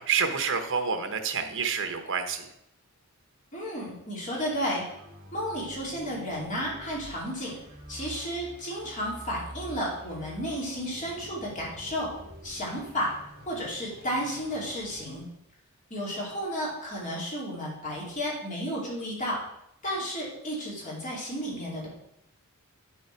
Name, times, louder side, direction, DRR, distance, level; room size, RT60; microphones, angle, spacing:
voice 1, 0.0-2.5, right 6 dB, 60° right, 7 dB, 1.1 m, -28 dB
voice 2, 3.5-4.8 5.3-7.5 7.9-12.1 12.4-13.1 13.5-15.3 15.9-19.4 19.8-21.9, equal, 35° left, -4 dB, 2.6 m, -32 dB
sound 1, 4.2-15.3, right 1 dB, 45° right, 2.1 m, -48 dB
9.0 x 6.4 x 4.5 m, 0.80 s
head